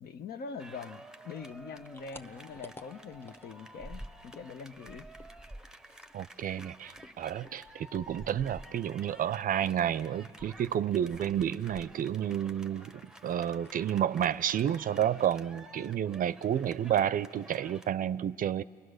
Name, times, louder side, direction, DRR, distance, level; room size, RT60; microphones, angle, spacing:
voice 1, 0.0-5.1, left 5 dB, 60° left, 11 dB, 0.8 m, -43 dB
sound 1, 0.6-17.9, right 1 dB, 5° right, 0.9 m, -52 dB
sound 2, 1.5-4.5 4.8-9.2 9.6-12.3 12.6-13.3 13.6-13.8 14.2-14.3 14.6-15.1, equal, 10° left, 1.2 m, -50 dB
voice 2, 6.1-18.6, right 10 dB, 55° right, 17 dB, 0.5 m, -30 dB
29.5 x 20.5 x 6.4 m, 2.3 s
supercardioid pair, 70°, 18 cm